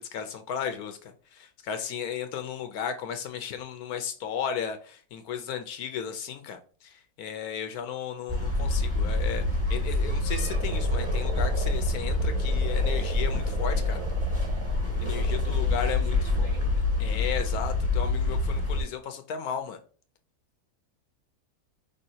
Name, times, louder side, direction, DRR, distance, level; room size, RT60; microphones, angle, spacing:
voice 1, 0.1-14.0 15.0-16.2 17.0-19.8, left 8 dB, 75° left, 1.1 m, -35 dB
sound 1, 8.3-18.8, left 2 dB, 10° right, 1.6 m, -26 dB
Frog, 10.4-15.5, right 6 dB, 70° right, 1.0 m, -40 dB
voice 2, 15.0-16.7, right 2 dB, 25° right, 1.2 m, -45 dB
5.5 x 3.4 x 2.7 m
omnidirectional pair, 1.7 m